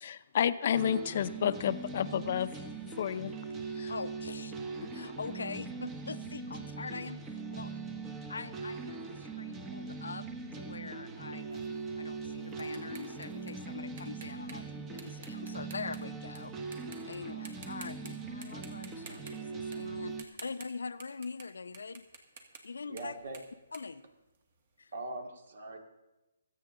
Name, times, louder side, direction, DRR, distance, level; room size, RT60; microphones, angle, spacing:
voice 1, 0.0-2.6 3.0-3.3 3.8-3.9, left 9 dB, 50° left, 0.6 m, -30 dB
sound 1, 0.7-20.2, right 4 dB, 15° right, 0.9 m, -41 dB
voice 2, 3.9-4.6 4.8-7.7 8.3-10.3 10.5-16.5 17.0-22.0 22.6-23.1 23.7-24.0 24.8-24.9, left 4 dB, 85° left, 0.7 m, -43 dB
sound 2, 11.5-16.4 16.7-17.2 17.4-18.1 18.4-24.7, right 5 dB, 50° right, 2.0 m, -52 dB
voice 3, 22.9-23.4 24.9-25.8, right 2 dB, 65° right, 2.3 m, -42 dB
25.0 x 8.4 x 3.8 m
hypercardioid pair, 155°, 0 cm